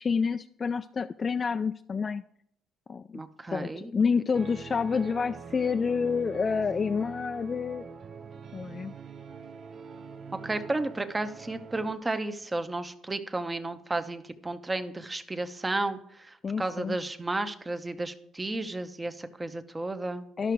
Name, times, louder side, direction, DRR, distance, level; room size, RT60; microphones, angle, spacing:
voice 1, 0.0-2.2 2.9-3.2 3.5-7.9 8.5-8.9 16.4-17.0 20.4-20.5, left 5 dB, 40° left, 8 dB, 0.3 m, -28 dB
voice 2, 3.1-3.9 10.4-20.3, right 2 dB, 20° right, 9 dB, 0.9 m, -33 dB
sound 1, 4.3-11.9, right 5 dB, 50° right, 0.5 m, -44 dB
12.5 x 5.8 x 4.7 m, 0.72 s
supercardioid pair, 70°, 0 cm